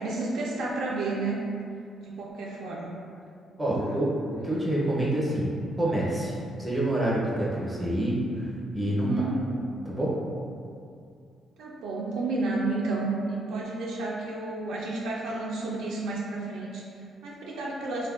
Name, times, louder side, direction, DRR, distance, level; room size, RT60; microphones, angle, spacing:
voice 1, 0.0-1.4 2.0-2.9 3.8-4.0 8.8-9.4 11.6-18.1, right 2 dB, 85° right, -4 dB, 0.4 m, -31 dB
voice 2, 3.6-5.5 5.8-6.3 6.6-8.5 8.7-9.1 9.8-10.2, right 1 dB, 15° right, -6 dB, 0.5 m, -27 dB
3.3 x 2.2 x 2.3 m, 2.4 s
cardioid pair, 150°, 0 cm